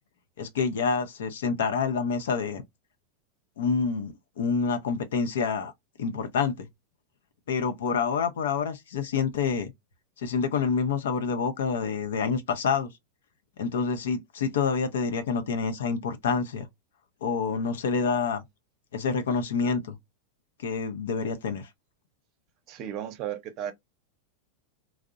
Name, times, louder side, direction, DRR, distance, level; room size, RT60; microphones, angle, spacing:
voice 1, 0.4-2.6 3.6-5.7 6.0-6.7 7.5-9.7 10.2-12.9 13.6-16.7 17.2-18.4 18.9-20.0 20.6-21.7, left 5 dB, 80° left, 0.5 m, -27 dB
voice 2, 22.7-23.7, right 10 dB, 50° right, 0.6 m, -34 dB
2.6 x 2.0 x 2.3 m
hypercardioid pair, 105°, 0 cm